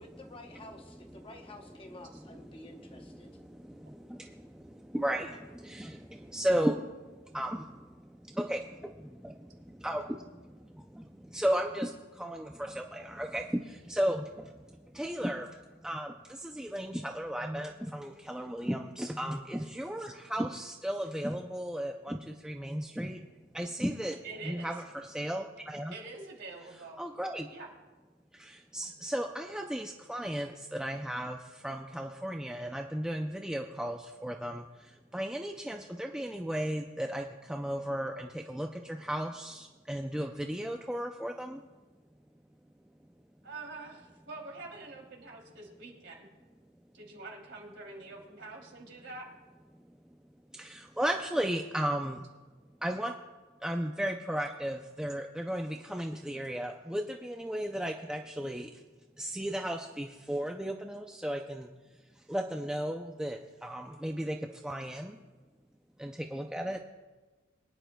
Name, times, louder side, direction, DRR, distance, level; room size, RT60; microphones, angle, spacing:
voice 1, 0.0-3.3, left 2 dB, 25° left, 4 dB, 0.9 m, -50 dB
voice 2, 2.6-23.2 23.5-24.2 24.4-25.9 27.0-27.5 28.3-41.6 50.5-52.3 52.8-53.2 53.6-58.8 59.2-61.7 62.3-65.2 66.0-66.8, equal, 5° right, 3 dB, 0.4 m, -35 dB
voice 3, 24.2-24.7 25.9-27.0 27.5-27.7 43.4-46.3 46.9-49.3 66.5-66.7, right 3 dB, 60° right, 0 dB, 2.9 m, -45 dB
23.0 x 10.0 x 2.2 m, 1.2 s
head